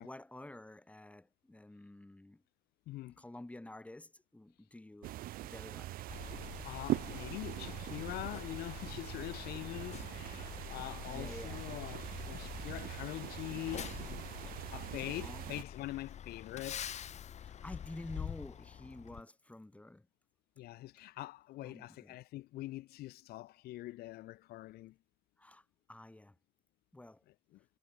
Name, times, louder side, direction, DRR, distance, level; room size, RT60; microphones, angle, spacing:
voice 1, 0.0-2.4 3.2-6.0 11.1-11.6 15.2-15.4 17.4-20.1 21.6-22.2 25.4-26.4 26.9-27.2, left 1 dB, 10° left, 4.2 m, -50 dB
voice 2, 2.9-3.2 6.6-13.9 14.7-16.9 20.6-25.0 27.3-27.6, left 17 dB, 70° left, 2.1 m, -44 dB
sound 1, 5.0-15.6, right 15 dB, 60° right, 0.7 m, -42 dB
Truck, 6.1-19.2, left 9 dB, 45° left, 2.1 m, -46 dB
cardioid pair, 110°, 16 cm